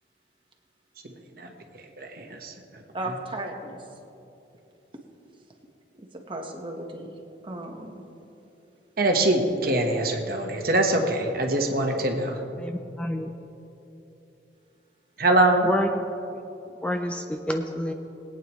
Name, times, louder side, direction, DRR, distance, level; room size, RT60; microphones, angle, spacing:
voice 1, 2.0-2.5 9.0-12.4 15.2-15.7, right 1 dB, 55° right, 3 dB, 1.2 m, -23 dB
voice 2, 2.9-3.8 6.0-7.1 7.4-8.0, right 1 dB, 30° right, 2 dB, 1.3 m, -35 dB
voice 3, 12.6-13.3 15.6-16.0 16.8-17.9, equal, 5° left, 4 dB, 0.4 m, -28 dB
21.0 x 9.0 x 3.1 m, 2.9 s
head